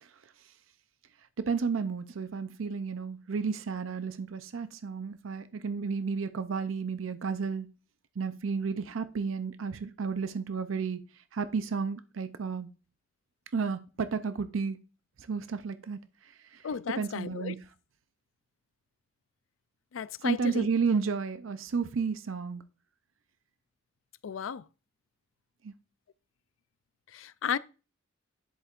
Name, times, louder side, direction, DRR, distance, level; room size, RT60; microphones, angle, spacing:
voice 1, 1.4-7.7 8.2-11.0 11.3-12.7 13.5-14.8 15.2-16.0 16.5-16.6 16.9-17.6 20.2-22.6 25.6-25.7, right 5 dB, 90° right, 0.5 m, -32 dB
voice 2, 16.6-17.5 19.9-20.7 24.2-24.6 27.1-27.6, left 7 dB, 85° left, 0.4 m, -34 dB
10.0 x 7.9 x 2.5 m
head